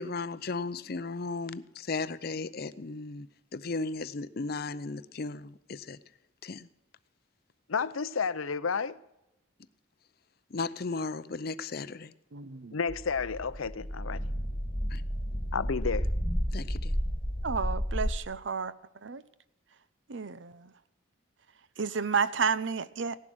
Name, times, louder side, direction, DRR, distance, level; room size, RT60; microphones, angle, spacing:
voice 1, 0.0-3.3 3.5-6.0 6.4-6.7 10.5-12.1 14.9-15.0 16.5-17.0, left 3 dB, 50° left, 0.6 m, -35 dB
voice 2, 7.7-9.0 12.7-14.2 15.5-16.1, left 5 dB, 90° left, 0.7 m, -31 dB
voice 3, 12.3-12.8 17.4-18.7 19.0-19.2 20.1-20.7 21.8-23.2, right 5 dB, 65° right, 0.7 m, -31 dB
sound 1, 12.9-18.2, equal, 10° left, 1.7 m, -32 dB
17.5 x 11.0 x 6.3 m
head